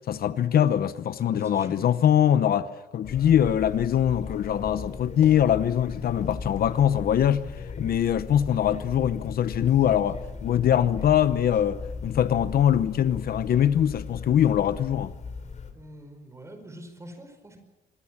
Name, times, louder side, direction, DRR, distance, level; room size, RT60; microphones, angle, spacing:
voice 1, 0.0-7.5 7.8-15.1, left 10 dB, 60° left, 0.9 m, -23 dB
voice 2, 1.3-1.8 15.7-17.6, right 1 dB, 15° right, 4.9 m, -44 dB
sound 1, 3.0-15.7, left 5 dB, 40° left, 3.3 m, -38 dB
25.0 x 23.0 x 7.4 m
cardioid pair, 165°, 18 cm